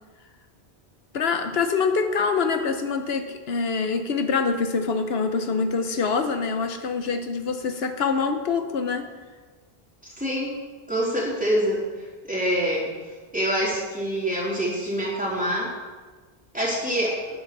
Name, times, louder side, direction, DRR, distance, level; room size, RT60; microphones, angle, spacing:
voice 1, 1.1-9.1, left 5 dB, 80° left, 7 dB, 1.1 m, -25 dB
voice 2, 10.2-10.5 10.9-11.8 12.2-12.9 13.3-15.7 16.5-17.2, equal, 10° right, -6 dB, 3.6 m, -25 dB
10.5 x 9.4 x 6.7 m, 1.4 s
omnidirectional pair, 1.0 m